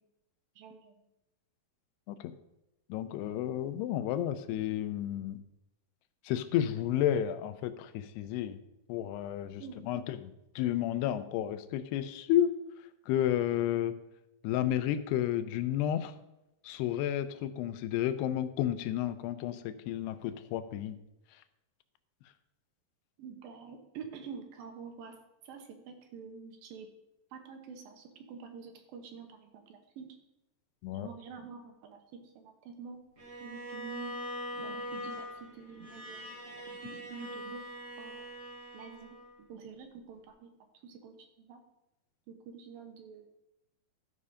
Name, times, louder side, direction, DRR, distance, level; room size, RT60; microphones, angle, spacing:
voice 1, 0.6-1.0 9.6-10.0 17.5-17.6 23.2-25.2 25.4-26.9 27.3-30.1 30.9-33.0 33.4-34.2 34.5-37.6 38.0-38.1 38.7-39.2 39.5-40.5 40.8-41.6 42.3-43.3, right 6 dB, 70° right, 5 dB, 2.7 m, -47 dB
voice 2, 2.9-5.4 6.2-8.6 8.9-10.2 10.6-12.5 13.1-13.9 14.4-16.1 16.6-21.0 30.8-31.1, left 11 dB, 80° left, 11 dB, 2.7 m, -31 dB
Bowed string instrument, 33.2-39.4, equal, 30° right, 2.5 m, -42 dB
13.0 x 5.5 x 5.0 m, 0.91 s
omnidirectional pair, 4.7 m